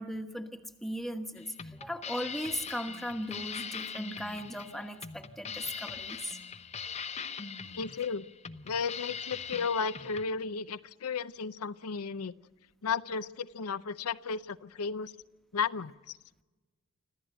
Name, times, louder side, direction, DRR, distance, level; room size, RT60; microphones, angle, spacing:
voice 1, 0.0-1.5 1.8-6.4, equal, ahead, 6 dB, 1.2 m, -37 dB
sound 1, 1.4-10.2, left 6 dB, 30° left, 0.7 m, -41 dB
voice 2, 7.7-8.3 8.6-12.3 12.8-15.1 15.5-15.9, left 5 dB, 85° left, 14 dB, 0.6 m, -34 dB
25.5 x 14.5 x 9.0 m, 1.2 s
head